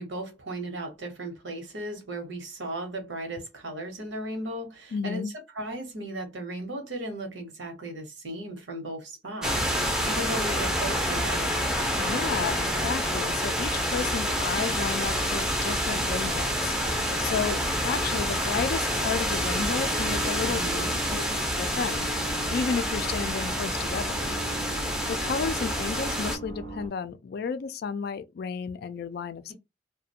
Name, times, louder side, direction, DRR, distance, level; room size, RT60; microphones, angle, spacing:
voice 1, 0.0-9.6 10.0-11.5 20.4-20.9, right 1 dB, 75° right, 0.9 m, -36 dB
voice 2, 4.9-5.3 12.0-16.7 17.2-20.7 21.1-21.2 21.6-22.1 22.5-24.4 25.1-29.5, left 5 dB, 55° left, 0.3 m, -32 dB
sound 1, 9.4-26.4, equal, 5° right, 0.5 m, -28 dB
sound 2, 15.0-26.9, right 2 dB, 55° right, 0.6 m, -41 dB
2.4 x 2.1 x 2.7 m
head